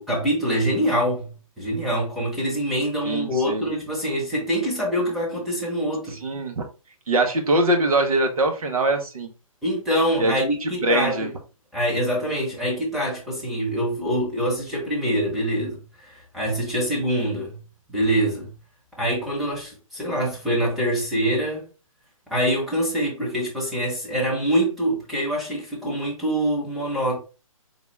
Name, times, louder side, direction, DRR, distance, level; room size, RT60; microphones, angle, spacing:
voice 1, 0.0-6.2 9.6-11.3 11.7-17.6 17.9-18.5 19.0-21.6 22.3-27.2, equal, ahead, 0.9 m, -25 dB
voice 2, 3.1-3.7 6.2-6.6 7.1-9.3 10.2-10.3 10.6-11.3, right 2 dB, 80° right, 1.0 m, -22 dB
3.9 x 2.4 x 3.2 m
hypercardioid pair, 155°, 18 cm